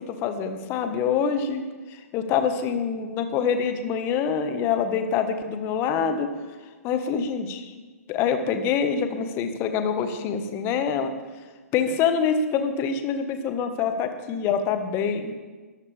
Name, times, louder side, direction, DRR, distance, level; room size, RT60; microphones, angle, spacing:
voice 1, 0.0-1.6 1.9-6.3 6.8-7.7 8.1-11.1 11.7-15.3, left 6 dB, 25° left, 7 dB, 1.6 m, -25 dB
22.5 x 14.0 x 3.5 m, 1.3 s
figure-of-eight pair, 120°, 9 cm